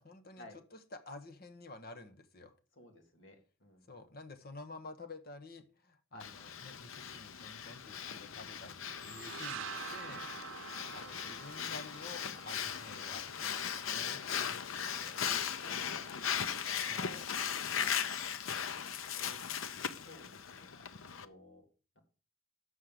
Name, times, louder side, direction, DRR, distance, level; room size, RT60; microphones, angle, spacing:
voice 1, 0.0-2.5 3.9-10.3 10.9-14.2 16.9-17.3, left 3 dB, 50° left, 9 dB, 1.1 m, -50 dB
voice 2, 2.8-3.4 3.6-4.0 6.1-6.3 10.7-11.2 14.3-14.5 14.9-16.5 16.8-17.4 17.8-18.3 19.1-19.4 20.1-20.8 21.2-21.6 22.0-22.1, left 1 dB, 65° left, 3 dB, 2.3 m, -56 dB
Breathing, 6.2-21.2, left 8 dB, 80° left, 0.7 m, -38 dB
Alarm, 8.6-16.7, left 1 dB, 30° left, 5.0 m, -62 dB
sound 1, 8.8-14.5, right 6 dB, 70° right, 0.7 m, -47 dB
6.7 x 6.4 x 7.5 m, 0.36 s
head